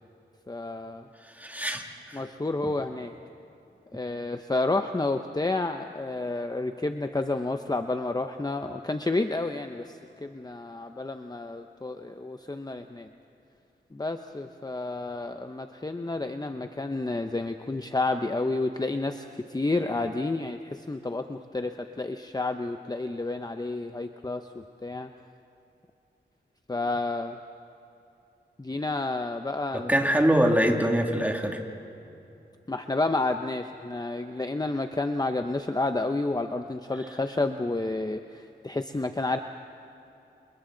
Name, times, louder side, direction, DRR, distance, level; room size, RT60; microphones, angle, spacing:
voice 1, 0.5-1.1 2.1-3.1 3.9-13.1 13.9-25.1 26.7-27.4 28.6-29.9 32.7-39.4, left 2 dB, 20° left, 7 dB, 0.8 m, -30 dB
voice 2, 1.4-2.2 2.6-2.7 29.7-31.6, equal, 10° right, 2 dB, 2.5 m, -24 dB
29.5 x 28.5 x 3.9 m, 2.8 s
wide cardioid pair, 70°, 19 cm